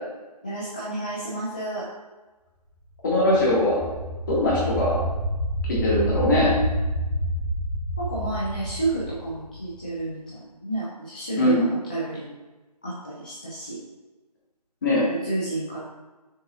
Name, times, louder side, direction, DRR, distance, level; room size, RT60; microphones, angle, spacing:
voice 1, 0.4-1.9 8.0-12.2 12.8-13.8 15.1-15.8, right 2 dB, 10° left, -10 dB, 0.5 m, -30 dB
voice 2, 3.0-3.9 4.3-5.0 5.6-6.5 11.4-11.7 14.8-15.1, left 1 dB, 30° left, -6 dB, 2.1 m, -21 dB
sound 1, 3.1-9.9, right 1 dB, 5° right, 1.8 m, -29 dB
7.7 x 6.3 x 2.6 m, 1.2 s
figure-of-eight pair, 155°, 21 cm